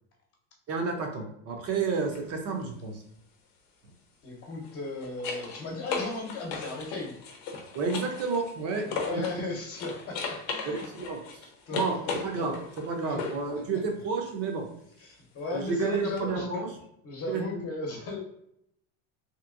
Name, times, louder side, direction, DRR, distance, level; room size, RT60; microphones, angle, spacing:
voice 1, 0.7-3.0 7.7-8.9 9.1-9.2 10.6-11.2 11.7-12.0 12.2-12.5 12.9-14.7 15.5-16.7 17.3-17.6, right 4 dB, 40° right, 2 dB, 0.7 m, -30 dB
sound 1, 2.0-2.2 4.5-9.4 9.8-13.5 16.2-16.3, left 5 dB, 60° left, 0.7 m, -37 dB
voice 2, 4.2-7.2 8.8-10.9 11.7-12.5 13.0-13.2 15.0-16.6 17.0-18.2, left 2 dB, 35° left, 0 dB, 0.9 m, -36 dB
2.9 x 2.8 x 2.5 m, 0.75 s
supercardioid pair, 140°, 38 cm